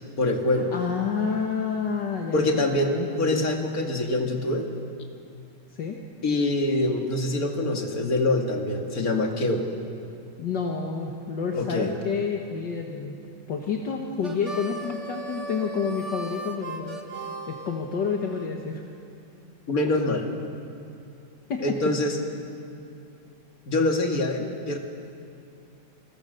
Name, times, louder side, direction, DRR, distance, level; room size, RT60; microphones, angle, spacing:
voice 1, 0.2-0.7 2.3-4.7 6.2-9.7 11.5-11.9 19.7-20.2 21.6-22.2 23.7-24.8, left 2 dB, 45° left, 2 dB, 2.6 m, -25 dB
voice 2, 0.7-3.4 5.8-6.0 10.4-13.2 13.5-17.0 17.5-18.8 21.5-21.8, left 5 dB, 65° left, 1 dB, 2.1 m, -29 dB
Harmonica, 14.2-18.5, right 2 dB, 40° right, 1.7 m, -37 dB
29.0 x 22.5 x 6.7 m, 2.5 s
omnidirectional pair, 2.2 m